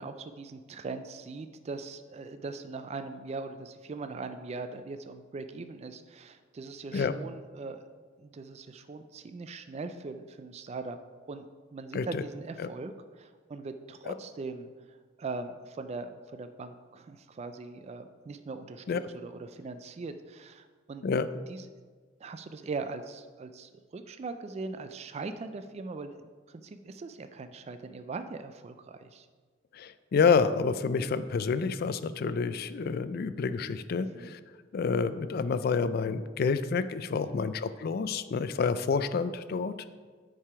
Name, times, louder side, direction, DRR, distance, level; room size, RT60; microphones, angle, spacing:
voice 1, 0.0-7.8 8.2-11.0 11.3-21.7 22.2-29.3 34.0-34.4 37.2-37.5, right 3 dB, 35° right, 9 dB, 0.3 m, -41 dB
voice 2, 29.8-34.4 34.7-39.9, left 5 dB, 50° left, 13 dB, 0.3 m, -28 dB
8.9 x 4.8 x 4.7 m, 1.5 s
head